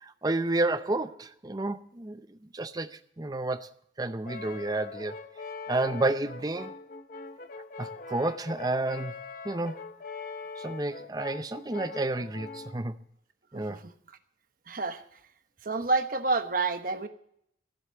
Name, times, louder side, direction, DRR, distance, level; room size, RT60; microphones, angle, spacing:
voice 1, 0.0-3.7 4.0-5.2 5.7-6.7 7.8-9.1 9.4-9.8 10.6-12.9 13.5-13.8, right 2 dB, 20° right, 0.6 m, -30 dB
Brass instrument, 4.2-12.8, left 4 dB, 50° left, 0.7 m, -42 dB
voice 2, 14.7-15.0 15.6-17.1, right 3 dB, 50° right, 1.1 m, -28 dB
14.5 x 8.1 x 7.9 m
head